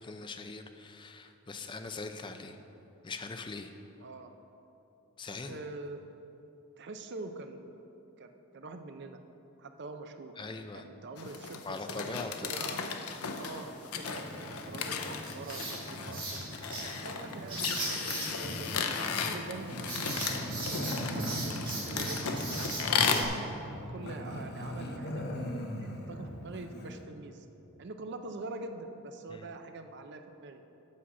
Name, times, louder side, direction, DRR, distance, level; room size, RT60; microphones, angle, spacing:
voice 1, 0.0-2.6 3.0-3.7 5.2-5.6 10.4-10.9 11.6-12.5 19.2-19.4 29.3-29.5, left 3 dB, 20° left, 7 dB, 0.4 m, -41 dB
voice 2, 4.0-4.3 5.5-6.0 6.8-7.9 8.2-9.2 9.6-10.3 10.7-12.9 13.3-18.9 19.2-20.2 20.7-22.4 23.0-27.5 27.8-30.6, right 3 dB, 50° right, 7 dB, 0.6 m, -45 dB
sound 1, 11.2-23.2, left 6 dB, 80° left, 0.6 m, -35 dB
Writing, 14.0-23.2, right 2 dB, 20° right, 2.0 m, -39 dB
Growling, 19.7-27.0, left 1 dB, 45° left, 0.9 m, -39 dB
8.5 x 5.7 x 6.2 m, 2.9 s
head